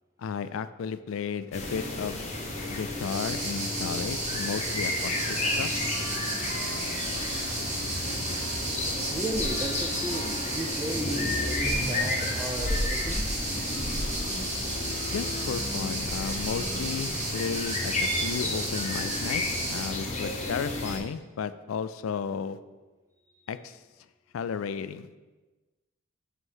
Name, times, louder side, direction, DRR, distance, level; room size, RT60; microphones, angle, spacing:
voice 1, 0.2-2.3 2.7-5.2 5.6-5.7 15.0-22.6 23.5-23.8 24.3-25.1, left 6 dB, 80° left, 13 dB, 0.3 m, -33 dB
sound 1, 1.5-21.0, left 2 dB, 30° left, 0.9 m, -32 dB
sound 2, 2.9-19.9, right 2 dB, 35° right, 1.3 m, -34 dB
voice 2, 9.1-13.4, right 1 dB, 15° right, 1 dB, 0.4 m, -35 dB
8.0 x 3.1 x 5.5 m, 1.2 s
head